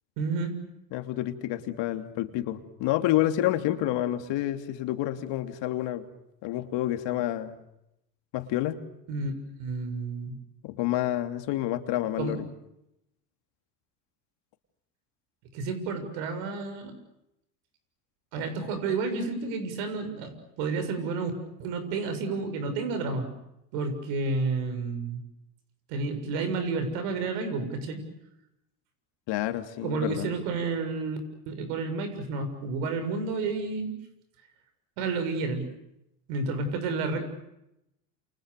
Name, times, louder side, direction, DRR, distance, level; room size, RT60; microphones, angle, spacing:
voice 1, 0.2-0.5 9.1-9.3 9.6-10.4 12.2-12.4 15.5-16.9 18.3-21.3 21.6-23.3 23.7-25.2 25.9-28.0 29.8-31.2 31.5-33.9 35.0-35.7 36.3-37.2, right 4 dB, 75° right, 8 dB, 7.3 m, -30 dB
voice 2, 0.9-6.0 6.4-7.6 8.3-8.8 10.6-12.4 29.3-30.3, left 14 dB, 60° left, 7 dB, 3.0 m, -29 dB
29.0 x 28.5 x 6.8 m, 0.85 s
supercardioid pair, 90°, 47 cm